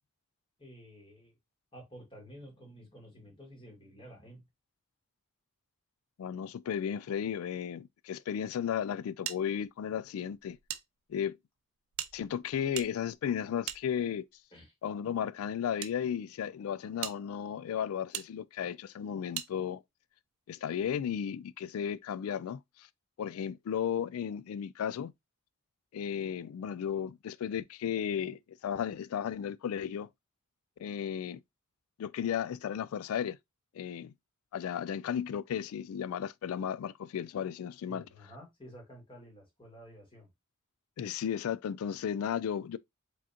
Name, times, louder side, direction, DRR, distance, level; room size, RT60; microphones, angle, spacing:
voice 1, 0.6-1.3 1.7-4.4 14.5-14.7 37.9-40.3, equal, 25° left, 2.1 m, -51 dB
voice 2, 6.2-10.6 11.1-11.4 12.1-14.2 14.8-19.8 20.5-22.9 23.2-25.1 25.9-30.1 30.8-31.4 32.0-33.4 33.7-34.1 34.5-38.0 41.0-42.8, left 8 dB, 75° left, 0.3 m, -34 dB
sound 1, 9.2-10.8 11.1-11.2 11.9-14.4 15.2-15.9 16.5-16.6 17.0-17.2 18.1-18.3 19.3-19.5, right 12 dB, 70° right, 0.5 m, -41 dB
4.9 x 3.7 x 2.8 m
head